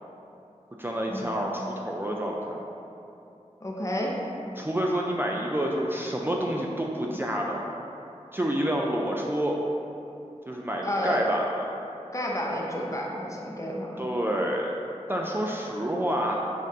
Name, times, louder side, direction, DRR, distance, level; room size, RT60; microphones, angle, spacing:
voice 1, 0.8-2.6 4.6-7.6 8.3-9.6 10.5-11.7 14.0-14.7 15.1-16.4, equal, 20° right, -2 dB, 0.3 m, -28 dB
voice 2, 3.6-4.1 10.8-11.2 12.1-14.0, left 1 dB, 25° left, -3 dB, 0.6 m, -30 dB
7.2 x 2.5 x 2.7 m, 2.8 s
wide cardioid pair, 55°, 12 cm